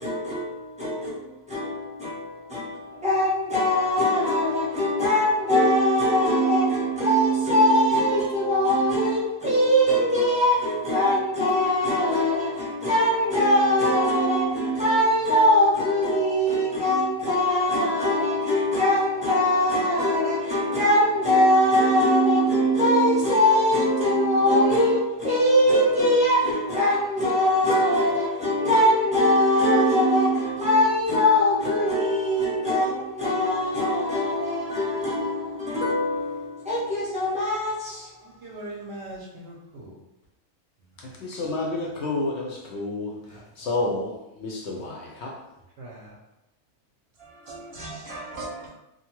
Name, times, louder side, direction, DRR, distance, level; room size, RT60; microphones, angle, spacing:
voice 1, 0.0-38.1, equal, 5° right, 0.6 m, -22 dB
voice 2, 38.4-39.9 45.8-46.1 47.3-48.7, right 2 dB, 60° right, 0.7 m, -39 dB
voice 3, 41.2-43.1 43.6-44.1 44.4-45.3, left 2 dB, 65° left, 0.8 m, -29 dB
2.7 x 2.2 x 2.9 m
omnidirectional pair, 1.4 m